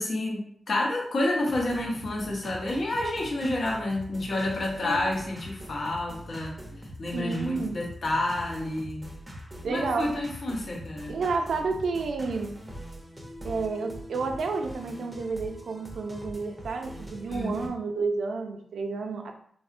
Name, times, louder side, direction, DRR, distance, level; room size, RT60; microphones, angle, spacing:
voice 1, 0.0-9.1 9.7-11.2 17.3-17.7, left 1 dB, 50° left, -2 dB, 0.7 m, -29 dB
sound 1, 1.5-17.7, equal, 10° right, 0.5 m, -43 dB
voice 2, 7.1-7.8 9.6-10.2 11.1-12.6 13.4-19.3, right 4 dB, 80° right, 4 dB, 0.3 m, -30 dB
3.5 x 2.0 x 2.4 m, 0.62 s
wide cardioid pair, 165°, 0 cm